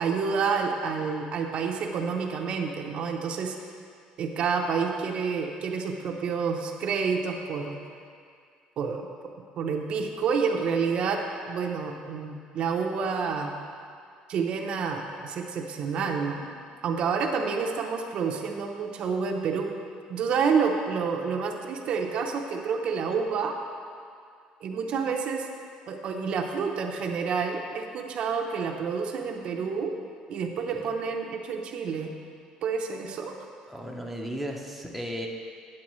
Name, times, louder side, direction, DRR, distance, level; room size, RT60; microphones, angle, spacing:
voice 1, 0.0-3.6 4.2-7.8 8.8-9.1 9.6-13.5 14.3-16.5 16.8-19.7 20.1-23.6 24.6-25.5 25.9-29.9 30.3-32.1 32.6-33.3, right 5 dB, 50° right, 3 dB, 0.6 m, -29 dB
voice 2, 33.7-35.3, equal, ahead, 0 dB, 0.6 m, -35 dB
9.0 x 8.6 x 3.1 m, 2.3 s
cardioid pair, 150°, 2 cm